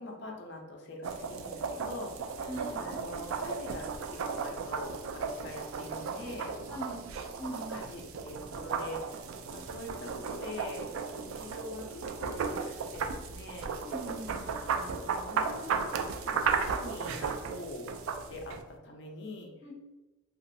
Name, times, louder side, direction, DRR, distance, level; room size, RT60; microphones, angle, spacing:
voice 1, 0.0-2.1 2.8-6.5 7.7-9.2 9.5-10.9 11.2-13.7 14.7-18.0 18.3-18.6 18.8-19.5, left 1 dB, 55° left, 1 dB, 0.6 m, -44 dB
sound 1, 1.0-18.6, right 5 dB, 80° right, 0.3 m, -35 dB
voice 2, 2.5-2.9 6.7-7.8 13.8-14.4 19.6-19.7, right 1 dB, 25° right, -6 dB, 0.7 m, -41 dB
3.0 x 2.5 x 2.6 m, 1.1 s
head